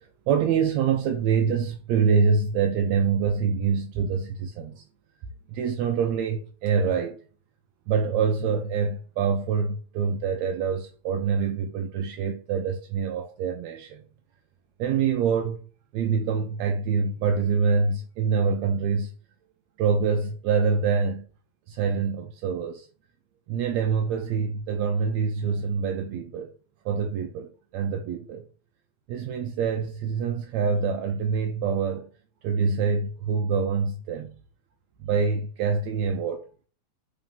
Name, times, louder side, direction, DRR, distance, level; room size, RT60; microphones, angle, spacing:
voice 1, 0.0-4.8 5.5-7.2 7.9-14.0 14.8-15.6 15.9-19.1 19.8-21.3 21.7-22.9 23.5-26.5 26.9-28.4 29.1-32.1 32.4-34.4 35.0-36.7, right 6 dB, 75° right, 1.8 m, -25 dB
4.5 x 4.0 x 5.3 m
omnidirectional pair, 3.4 m